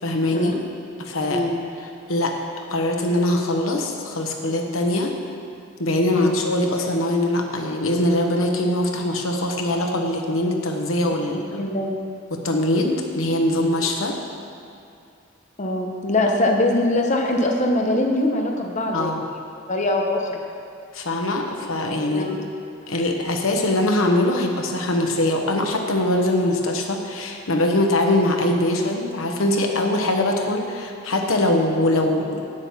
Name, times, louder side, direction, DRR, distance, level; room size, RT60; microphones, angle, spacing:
voice 1, 0.0-0.6 1.0-1.4 2.1-2.3 2.7-5.1 5.8-11.6 12.3-14.2 18.9-19.2 20.9-22.3 22.9-32.4, left 1 dB, 90° left, 2 dB, 1.2 m, -22 dB
voice 2, 1.3-1.6 6.1-6.3 11.3-11.9 15.6-19.4 19.7-20.4 22.1-22.4, left 1 dB, 35° left, 1 dB, 0.9 m, -23 dB
8.9 x 8.0 x 5.8 m, 2.5 s
head